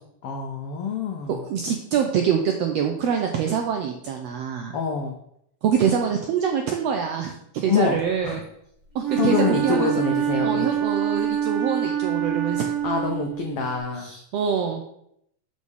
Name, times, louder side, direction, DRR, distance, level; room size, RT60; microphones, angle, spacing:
voice 1, 0.2-1.4 4.7-5.1 7.7-8.4 9.2-10.7 12.8-14.1, left 5 dB, 85° left, 2 dB, 1.2 m, -26 dB
voice 2, 1.3-4.8 5.6-8.4 8.9-9.9 10.4-12.6 14.0-14.8, right 7 dB, 90° right, 3 dB, 1.4 m, -25 dB
Wind instrument woodwind instrument, 9.0-13.7, right 10 dB, 45° right, 1.3 m, -25 dB
6.2 x 6.1 x 3.6 m, 0.73 s
omnidirectional pair, 3.5 m